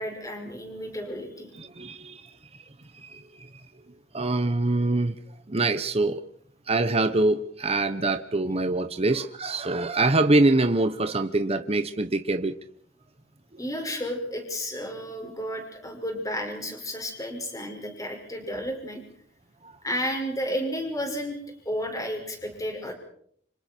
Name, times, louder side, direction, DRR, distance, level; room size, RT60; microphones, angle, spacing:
voice 1, 0.0-1.5 13.6-19.0 19.8-21.4 21.7-22.9, equal, 20° left, 5.7 m, -32 dB
voice 2, 1.6-2.2 3.0-3.5 4.1-5.2 5.5-6.2 6.7-12.6 19.6-19.7, right 2 dB, 35° right, 1.1 m, -24 dB
29.0 x 27.0 x 4.6 m
head